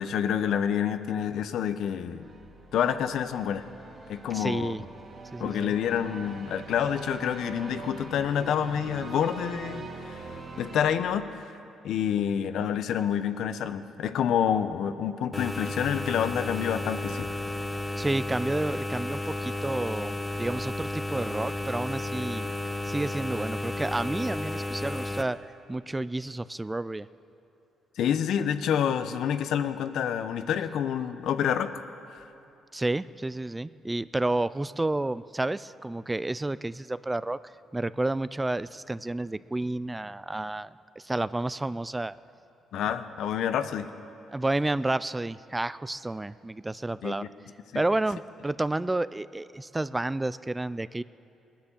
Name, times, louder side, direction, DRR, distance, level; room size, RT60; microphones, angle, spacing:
voice 1, 0.0-2.3 2.7-3.7 4.1-4.8 5.4-11.5 11.8-17.3 28.0-31.8 32.1-32.2 42.7-44.0 47.0-47.3 47.7-47.8, left 8 dB, 75° left, 11 dB, 0.8 m, -28 dB
sound 1, 2.2-10.9, right 3 dB, 45° right, 1.8 m, -43 dB
voice 2, 4.3-4.8 5.3-5.7 18.0-22.5 22.8-25.4 25.7-27.1 32.7-37.4 37.7-40.7 41.0-42.2 44.3-47.3 47.7-51.0, right 2 dB, 15° right, 17 dB, 0.3 m, -30 dB
sound 2, 15.3-25.2, left 2 dB, 15° left, 1.0 m, -33 dB
19.0 x 10.5 x 7.2 m, 2.8 s
cardioid pair, 90°, 0 cm